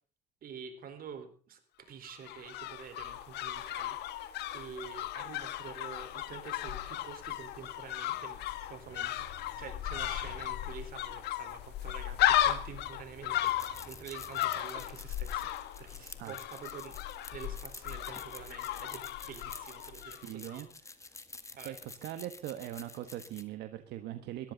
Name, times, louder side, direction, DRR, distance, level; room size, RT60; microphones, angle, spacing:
voice 1, 0.4-20.7 21.6-21.8, right 7 dB, 60° right, 8 dB, 4.2 m, -48 dB
sound 1, 2.1-20.2 20.5-20.6, left 13 dB, 80° left, 1.5 m, -35 dB
sound 2, 7.0-14.7, equal, 15° right, 7.4 m, -59 dB
sound 3, 13.3-23.4, left 3 dB, 15° left, 1.7 m, -50 dB
voice 2, 20.2-20.7 21.6-24.5, right 12 dB, 80° right, 10 dB, 1.3 m, -41 dB
21.5 x 14.0 x 4.0 m, 0.41 s
cardioid pair, 110°, 17 cm